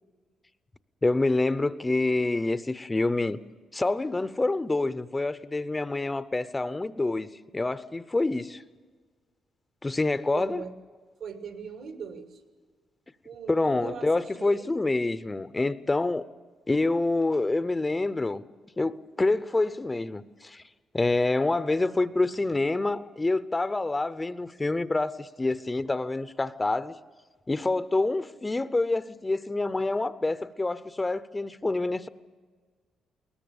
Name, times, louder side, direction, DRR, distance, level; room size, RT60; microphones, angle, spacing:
voice 1, 1.0-3.4 3.7-8.6 9.8-10.6 13.5-16.3 16.7-18.4 18.8-20.6 20.9-26.9 27.5-32.1, left 2 dB, 20° left, 0.7 m, -27 dB
voice 2, 10.3-10.7 11.2-12.4 13.2-14.7, right 6 dB, 70° right, 2.7 m, -40 dB
21.5 x 19.0 x 7.0 m
cardioid pair, 90°, 0 cm